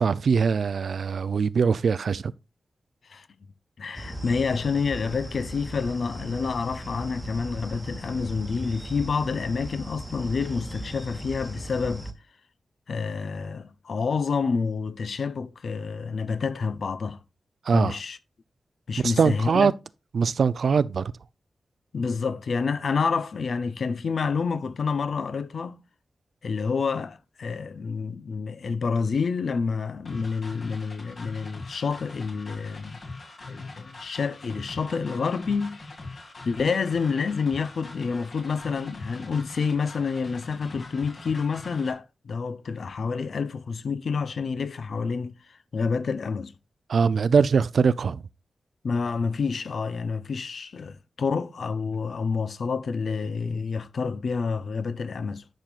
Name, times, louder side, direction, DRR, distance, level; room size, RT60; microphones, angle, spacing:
voice 1, 0.0-2.2 17.7-18.0 19.0-19.7 20.1-21.0 46.9-48.2, right 5 dB, 70° right, 0.5 m, -22 dB
voice 2, 3.8-12.1 12.9-17.2 17.7-18.2 18.9-19.7 21.9-25.8 26.4-33.0 33.5-35.8 36.4-46.5 48.8-55.4, left 5 dB, 65° left, 0.7 m, -28 dB
sound 1, 3.9-12.1, equal, ahead, 1.2 m, -38 dB
sound 2, 30.1-41.9, left 3 dB, 50° left, 2.3 m, -42 dB
10.5 x 6.3 x 2.4 m
wide cardioid pair, 135°, 0 cm